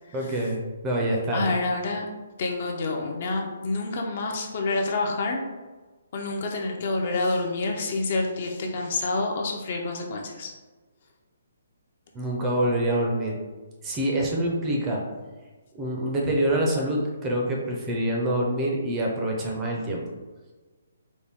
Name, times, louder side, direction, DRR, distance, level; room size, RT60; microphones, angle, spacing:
voice 1, 0.1-1.5 12.1-13.4 13.8-15.0 15.7-20.0, right 1 dB, 15° right, -1 dB, 0.5 m, -26 dB
voice 2, 1.3-2.1 2.4-5.4 6.1-10.5, left 3 dB, 40° left, 2 dB, 0.5 m, -28 dB
4.1 x 2.2 x 3.4 m, 1.3 s
hypercardioid pair, 165°, 0 cm